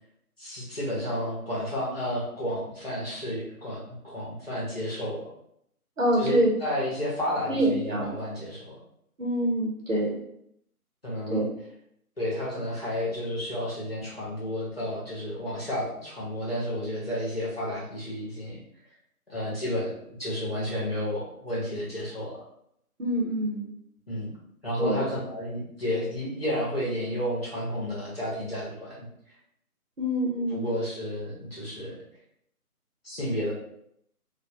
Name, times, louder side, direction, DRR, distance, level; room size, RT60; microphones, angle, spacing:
voice 1, 0.4-5.3 6.2-8.7 11.0-11.5 12.2-18.6 19.3-22.4 24.1-24.3 24.6-29.1 30.5-32.0 33.0-33.5, equal, 40° left, -6 dB, 0.8 m, -31 dB
voice 2, 6.0-6.5 7.5-8.2 9.2-10.2 11.3-11.5 23.0-23.7 24.8-25.1 30.0-30.7, right 1 dB, 60° right, -2 dB, 0.8 m, -26 dB
2.2 x 2.1 x 2.7 m, 0.73 s
figure-of-eight pair, 175°, 45 cm